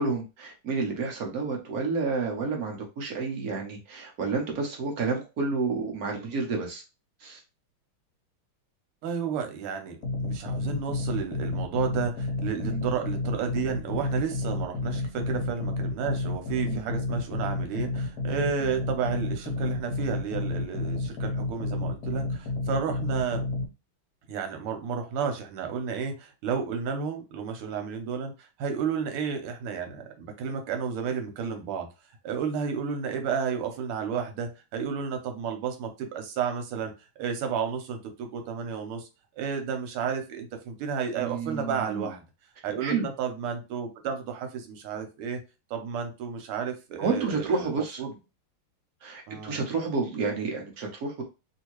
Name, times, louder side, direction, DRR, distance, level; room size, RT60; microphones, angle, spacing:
voice 1, 0.0-6.8 7.2-7.4 12.6-12.8 16.6-16.8 41.2-42.1 42.8-43.1 47.0-48.0 49.0-51.2, right 4 dB, 60° right, 1 dB, 1.0 m, -30 dB
voice 2, 9.0-23.4 24.3-31.9 32.2-36.9 37.2-39.1 39.4-42.3 42.6-45.4 45.7-48.2 49.3-49.6, right 6 dB, 80° right, 5 dB, 1.7 m, -32 dB
sound 1, 10.0-23.7, left 2 dB, 60° left, 1.2 m, -31 dB
3.4 x 2.8 x 3.0 m, 0.28 s
omnidirectional pair, 2.4 m